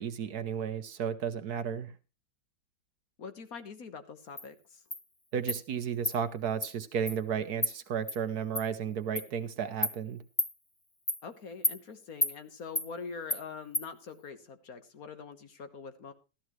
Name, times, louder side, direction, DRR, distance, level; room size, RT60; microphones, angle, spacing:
voice 1, 0.0-1.9 5.3-10.2, right 7 dB, 65° right, 11 dB, 1.2 m, -33 dB
voice 2, 3.2-4.8 11.2-16.1, left 5 dB, 55° left, 9 dB, 1.5 m, -44 dB
Insect, 4.4-4.5 4.9-5.0 5.5-5.6 6.0-6.2 6.6-6.7 7.1-7.2 7.6-7.7 8.1-8.2 8.5-8.6 9.1-9.3 9.8-9.9 10.4-10.5 11.1-11.2 11.6-11.8 12.2-12.3 12.7-12.9 13.3-13.4 13.7-13.9, left 1 dB, 15° left, 0.7 m, -30 dB
14.5 x 13.0 x 3.1 m, 0.30 s
omnidirectional pair, 2.0 m